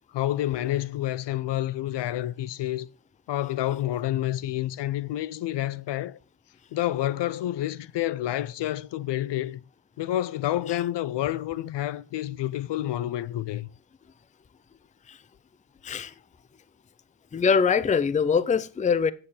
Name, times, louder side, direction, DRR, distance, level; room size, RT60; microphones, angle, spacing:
voice 1, 0.1-2.9 3.3-6.2 6.7-9.6 10.0-13.7, left 13 dB, 65° left, 0.6 m, -29 dB
voice 2, 15.8-16.1 17.3-19.1, left 6 dB, 15° left, 0.5 m, -23 dB
8.8 x 6.6 x 5.6 m
cardioid pair, 90°, 47 cm